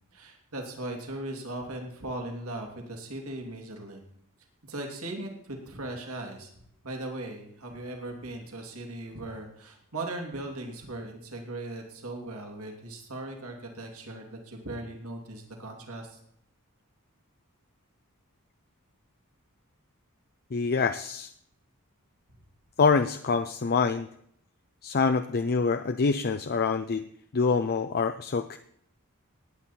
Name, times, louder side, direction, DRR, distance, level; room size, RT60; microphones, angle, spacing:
voice 1, 0.1-4.0 4.7-6.5 6.8-16.2, right 2 dB, 70° right, 2 dB, 2.8 m, -38 dB
voice 2, 20.5-21.3 22.8-24.1 24.8-27.1 27.3-28.6, left 5 dB, 45° left, 8 dB, 0.5 m, -25 dB
19.5 x 8.8 x 4.4 m, 0.70 s
head